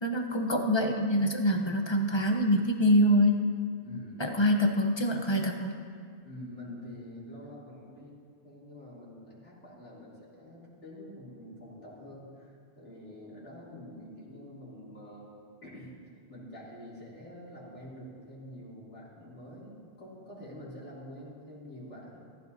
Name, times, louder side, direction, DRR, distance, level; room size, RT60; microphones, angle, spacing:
voice 1, 0.0-3.4 4.2-5.8, equal, 25° left, 3 dB, 0.9 m, -25 dB
voice 2, 3.8-4.4 6.2-15.3 15.6-15.9 16.3-22.2, left 1 dB, 85° left, -7 dB, 3.2 m, -46 dB
15.0 x 14.5 x 2.7 m, 2.1 s
omnidirectional pair, 1.2 m